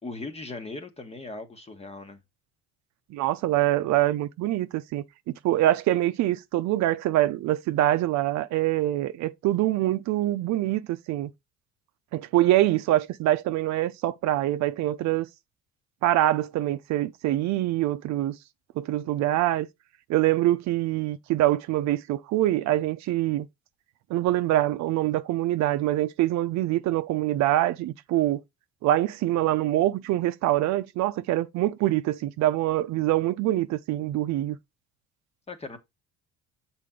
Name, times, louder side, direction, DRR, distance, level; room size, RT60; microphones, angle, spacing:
voice 1, 0.0-2.2 35.5-35.8, left 3 dB, 20° left, 1.3 m, -38 dB
voice 2, 3.1-5.0 5.4-11.3 12.1-15.3 16.0-18.4 18.8-19.7 20.1-23.5 24.1-28.4 28.8-34.6, right 14 dB, 65° right, 0.6 m, -24 dB
6.7 x 4.4 x 3.7 m
cardioid pair, 110°, 30 cm